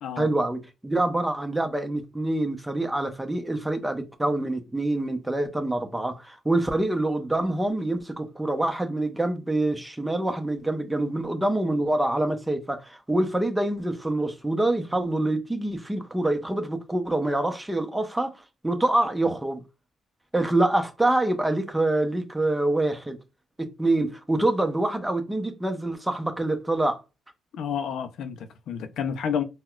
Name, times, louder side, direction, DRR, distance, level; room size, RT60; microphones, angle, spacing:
voice 1, 0.2-19.6 20.3-23.2 23.6-27.0, right 2 dB, 10° right, 0.7 m, -26 dB
voice 2, 27.5-29.4, left 7 dB, 75° left, 0.5 m, -30 dB
4.0 x 2.2 x 2.4 m
cardioid pair, 90°, 0 cm